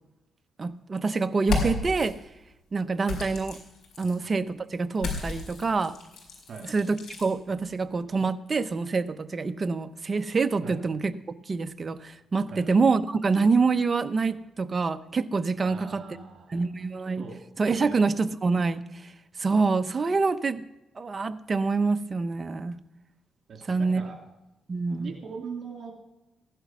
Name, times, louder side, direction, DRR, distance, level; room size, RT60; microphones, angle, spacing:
voice 1, 0.6-2.1 2.7-3.6 4.0-5.9 6.6-11.1 11.5-16.0 16.5-17.3 17.6-18.8 19.4-20.6 21.0-22.8 23.7-24.0 24.7-25.1, right 4 dB, 35° right, 10 dB, 0.7 m, -26 dB
sound 1, 1.4-2.1 3.0-4.2 4.9-7.3, left 4 dB, 75° left, 4.9 m, -33 dB
voice 2, 15.6-16.8 17.2-17.4 17.8-18.1 23.5-24.2 25.0-25.9, right 5 dB, 60° right, 2 dB, 2.8 m, -41 dB
15.5 x 11.0 x 6.1 m, 0.95 s
cardioid pair, 95°, 0 cm